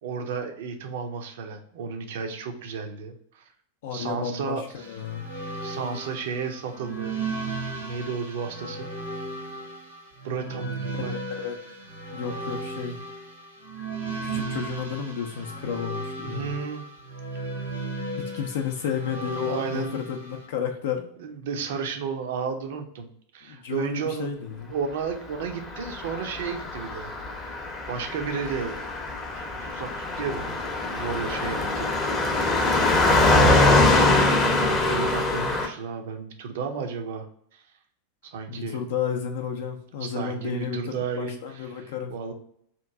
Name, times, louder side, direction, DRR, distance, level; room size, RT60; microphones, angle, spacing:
voice 1, 0.0-3.4 3.9-4.9 5.6-7.2 7.4-7.5 7.8-8.9 10.2-11.1 16.2-16.8 19.4-20.0 21.2-27.6 27.9-28.8 29.3-30.6 30.9-31.9 33.1-33.4 33.9-37.3 37.5-37.6 38.3-38.8 40.0-42.3, right 5 dB, 55° right, 5 dB, 0.5 m, -33 dB
voice 2, 3.8-5.3 11.1-11.5 12.1-13.0 14.2-16.5 18.2-21.1 23.4-24.7 33.4-34.0 38.5-42.2, left 7 dB, 55° left, 3 dB, 0.4 m, -32 dB
sound 1, 4.8-20.5, right 2 dB, 75° right, 1.0 m, -35 dB
Car passing by, 25.7-35.7, left 2 dB, 20° left, 0.7 m, -23 dB
2.9 x 2.5 x 3.4 m, 0.68 s
figure-of-eight pair, 90°, 0 cm